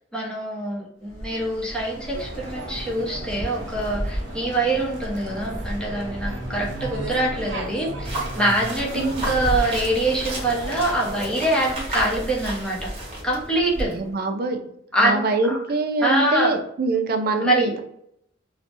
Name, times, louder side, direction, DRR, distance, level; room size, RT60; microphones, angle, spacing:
voice 1, 0.1-12.9 13.2-13.9 14.9-15.6 16.0-16.5 17.4-17.7, right 1 dB, 5° left, -3 dB, 0.8 m, -24 dB
Bird, 1.0-14.2, equal, 70° left, 1.1 m, -35 dB
sound 1, 2.1-11.7, right 1 dB, 70° right, 0.8 m, -36 dB
sound 2, 8.0-13.2, right 1 dB, 30° right, 1.0 m, -34 dB
voice 2, 8.9-9.3 13.8-14.7 15.0-17.8, right 3 dB, 55° right, 5 dB, 0.4 m, -24 dB
3.1 x 2.1 x 2.8 m, 0.72 s
head